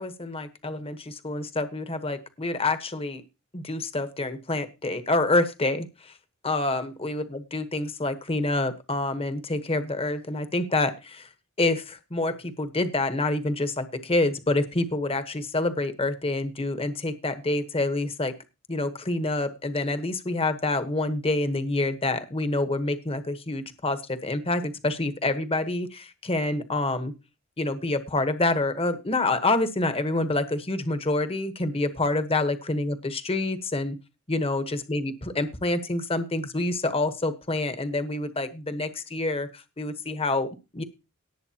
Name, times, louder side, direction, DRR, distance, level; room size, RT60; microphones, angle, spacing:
voice 1, 0.0-3.2 3.5-6.1 6.4-7.2 7.5-11.3 11.6-18.3 18.7-27.1 27.6-34.0 34.3-39.5 39.8-40.8, left 2 dB, 25° left, 10 dB, 1.1 m, -27 dB
18.5 x 7.9 x 2.9 m, 0.28 s
head